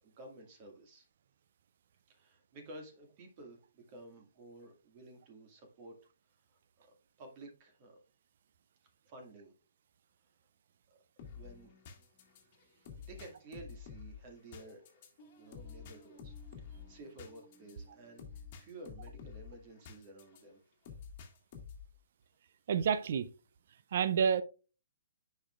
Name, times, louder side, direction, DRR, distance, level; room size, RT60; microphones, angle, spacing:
voice 1, 0.0-1.1 2.1-6.0 6.8-8.0 9.1-9.5 11.4-11.7 13.0-14.9 15.4-16.4 16.7-20.6, right 2 dB, 35° right, 2.0 m, -53 dB
sound 1, 11.2-20.4 20.8-22.0, left 6 dB, 35° left, 1.6 m, -50 dB
voice 2, 22.7-23.3 23.9-24.4, right 7 dB, 50° right, 0.5 m, -28 dB
10.0 x 5.2 x 2.4 m
figure-of-eight pair, 130°, 0 cm